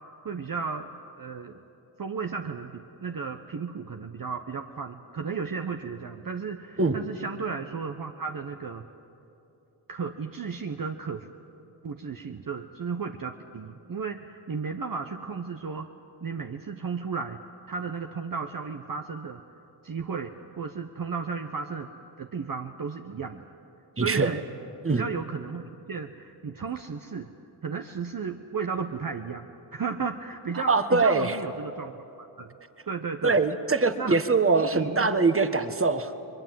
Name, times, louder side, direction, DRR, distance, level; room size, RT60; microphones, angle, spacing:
voice 1, 0.2-1.6 2.0-8.8 9.9-11.3 11.8-15.9 16.2-17.4 17.7-19.4 19.8-21.9 22.2-23.5 24.0-24.4 24.9-27.3 27.6-31.9 32.2-32.6 32.9-33.4 34.0-34.2 34.6-35.1, right 5 dB, 45° right, 5 dB, 1.1 m, -34 dB
voice 2, 24.0-24.3 24.8-25.0 30.7-31.4 33.2-36.1, right 3 dB, 25° right, 9 dB, 1.5 m, -23 dB
24.0 x 21.5 x 7.7 m, 2.9 s
supercardioid pair, 45°, 48 cm